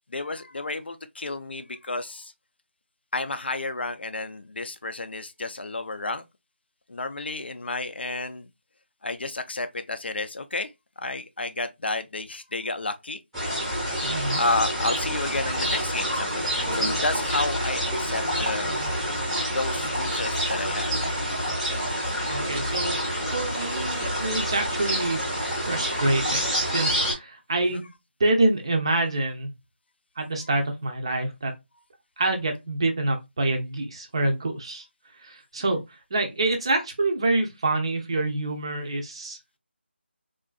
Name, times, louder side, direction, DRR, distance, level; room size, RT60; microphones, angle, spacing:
voice 1, 0.1-2.3 3.1-6.2 6.9-8.5 9.0-10.7 11.0-13.2 14.3-18.8 19.4-20.9 27.7-27.8, left 2 dB, 60° left, 0.5 m, -31 dB
sound 1, 13.3-27.1, equal, ahead, 0.8 m, -27 dB
voice 2, 14.0-14.4 22.3-25.2 25.7-27.9 28.2-29.5 30.2-31.5 32.2-34.9 35.2-35.8 36.1-39.6, right 2 dB, 25° right, 0.5 m, -26 dB
3.7 x 2.4 x 2.3 m
figure-of-eight pair, 170°, 6 cm